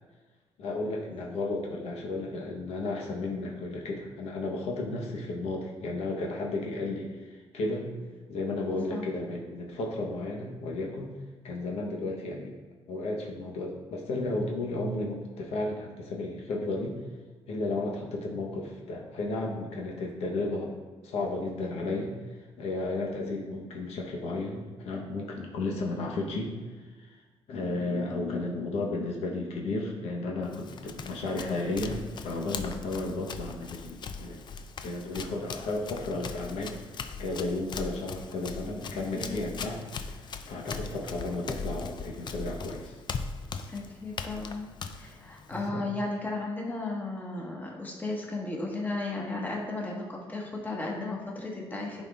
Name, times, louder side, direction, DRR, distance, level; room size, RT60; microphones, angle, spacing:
voice 1, 0.6-7.9 8.3-11.2 11.4-12.5 12.9-17.0 17.5-20.7 21.0-22.1 22.6-26.5 27.0-27.1 27.5-34.4 34.8-36.8 37.2-39.8 40.1-42.9 45.5-45.8, left 2 dB, 80° left, -1 dB, 1.1 m, -33 dB
Run, 30.4-45.7, left 5 dB, 45° left, 0.5 m, -40 dB
voice 2, 43.7-52.0, left 2 dB, 15° left, -2 dB, 1.4 m, -35 dB
10.5 x 4.2 x 2.5 m, 1.4 s
cardioid pair, 95°, 10 cm